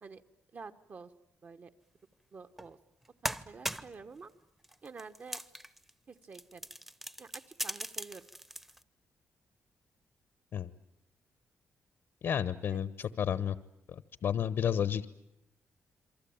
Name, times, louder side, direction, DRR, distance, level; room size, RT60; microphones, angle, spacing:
voice 1, 0.5-1.1 1.4-1.7 2.3-2.8 3.2-4.3 4.8-5.4 6.1-6.6 7.2-8.2 12.6-12.8, right 4 dB, 40° right, 7 dB, 1.3 m, -48 dB
sound 1, 2.6-2.7 3.0-4.0 4.6-5.9 6.2-8.8, equal, 5° right, 0.9 m, -39 dB
voice 2, 12.2-13.6 13.9-15.1, left 8 dB, 65° left, 13 dB, 1.1 m, -31 dB
27.5 x 24.0 x 8.8 m, 0.87 s
cardioid pair, 125°, 5 cm